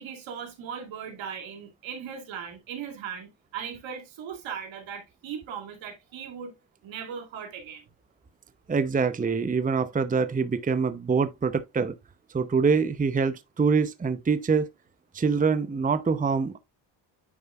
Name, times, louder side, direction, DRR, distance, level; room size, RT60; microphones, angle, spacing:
voice 1, 0.0-6.5 6.8-7.8, right 7 dB, 80° right, 2.5 m, -38 dB
voice 2, 8.7-11.9 12.3-14.7 15.1-16.6, right 5 dB, 20° right, 0.7 m, -25 dB
9.7 x 5.3 x 2.3 m
cardioid pair, 80°, 46 cm